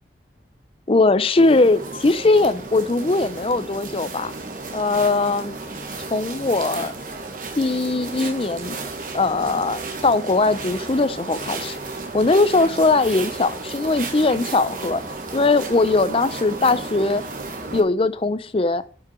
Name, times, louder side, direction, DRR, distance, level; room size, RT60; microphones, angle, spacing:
voice 1, 0.9-4.3 4.7-5.6 6.1-6.9 7.6-8.8 9.1-11.8 12.1-15.0 15.3-17.2 17.7-18.8, left 3 dB, 30° left, 14 dB, 0.5 m, -20 dB
sound 1, 1.4-17.8, right 3 dB, 50° right, 1.6 m, -33 dB
11.5 x 6.1 x 4.3 m, 0.40 s
head